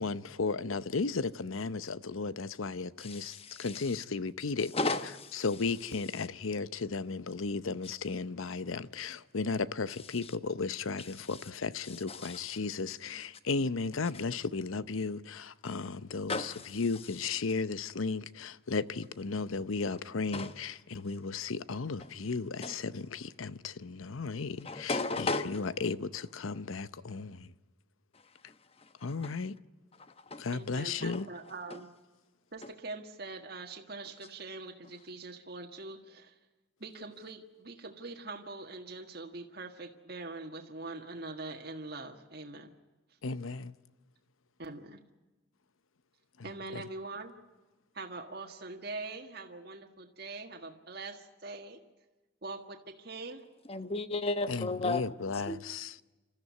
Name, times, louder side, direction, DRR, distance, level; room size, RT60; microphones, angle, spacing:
voice 1, 0.0-4.7 5.3-27.5 29.0-29.5 30.4-31.3 43.2-43.7 54.5-55.9, left 4 dB, 85° left, 0.8 m, -35 dB
voice 2, 3.0-3.8 4.7-5.4 10.2-10.3 11.8-12.6 16.3-16.7 20.3-20.5 22.0-22.1 22.6-22.8 24.6-25.7 29.2-29.4 30.3-30.5 31.1-31.2 53.7-55.0 55.5-55.6, left 3 dB, 30° left, 1.1 m, -34 dB
voice 3, 30.5-31.9 32.5-36.4 36.8-42.7 44.6-45.0 46.4-47.3 47.9-51.8 52.4-53.4, right 3 dB, 50° right, 1.7 m, -43 dB
28.5 x 14.0 x 9.6 m
head